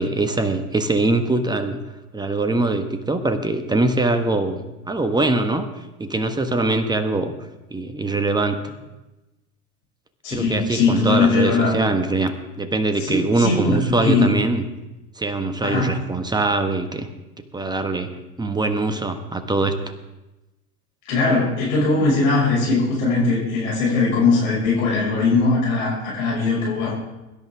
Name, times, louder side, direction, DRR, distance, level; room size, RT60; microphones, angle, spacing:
voice 1, 0.0-1.8 2.1-5.6 6.0-7.3 7.7-8.6 10.3-14.6 15.2-17.1 17.5-18.1 18.4-19.7, right 2 dB, 10° right, 8 dB, 1.4 m, -22 dB
voice 2, 10.2-11.8 13.0-14.3 15.6-15.9 21.1-26.9, left 3 dB, 60° left, -4 dB, 5.8 m, -20 dB
23.5 x 11.0 x 3.5 m, 1.0 s
figure-of-eight pair, 75°, 45 cm